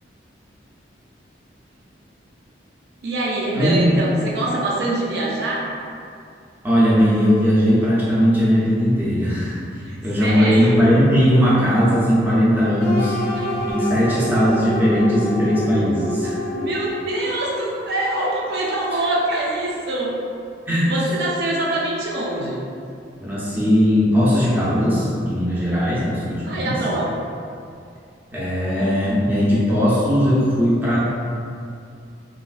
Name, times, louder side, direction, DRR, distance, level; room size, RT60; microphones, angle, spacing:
voice 1, 3.0-5.7 9.8-10.9 13.5-13.7 16.5-20.2 20.9-22.6 26.4-27.1 28.8-28.9, right 2 dB, 60° right, -4 dB, 0.4 m, -24 dB
voice 2, 3.5-4.0 6.6-13.2 13.7-16.4 20.7-20.8 23.2-26.8 28.3-31.0, equal, 10° right, -9 dB, 0.5 m, -18 dB
sound 1, 12.8-17.7, equal, 30° left, 0.8 m, -27 dB
3.1 x 2.3 x 2.4 m, 2.4 s
head